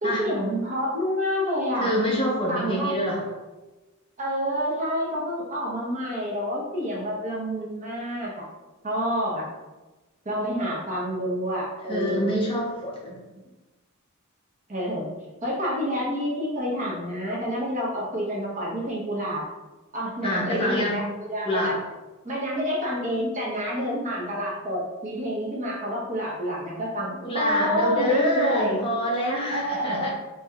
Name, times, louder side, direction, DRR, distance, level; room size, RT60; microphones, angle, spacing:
voice 1, 0.0-1.9 2.5-2.9 4.2-8.4 8.8-9.5 10.2-12.3 14.7-15.1 15.4-19.4 19.9-21.7 22.2-28.8 29.5-30.1, equal, 35° right, -4 dB, 0.9 m, -28 dB
voice 2, 1.8-3.2 11.9-13.2 20.2-21.0 21.4-21.7 27.2-30.1, equal, 25° left, -4 dB, 0.8 m, -26 dB
4.5 x 2.9 x 2.4 m, 1.1 s
head